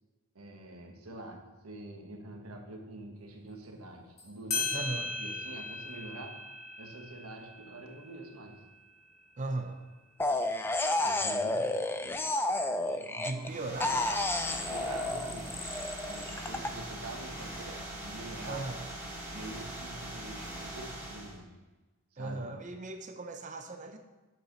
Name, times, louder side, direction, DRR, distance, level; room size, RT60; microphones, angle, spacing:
voice 1, 0.3-6.4 6.8-8.6 11.0-12.3 12.7-14.0 14.5-15.6 16.0-18.6 19.3-21.5 22.1-22.5, right 2 dB, 80° right, 2 dB, 1.3 m, -46 dB
sound 1, 4.2-4.3 4.5-9.6, left 3 dB, 45° left, 2.4 m, -38 dB
voice 2, 4.7-5.1 9.4-9.9 13.2-13.9 18.5-18.9 22.2-24.0, right 2 dB, 35° right, 6 dB, 0.6 m, -38 dB
sound 2, 10.2-13.5 13.8-16.7, left 2 dB, 10° left, 0.3 m, -31 dB
sound 3, 13.4-21.4, right 1 dB, 10° right, 2.0 m, -42 dB
9.0 x 7.9 x 3.1 m, 1.2 s
head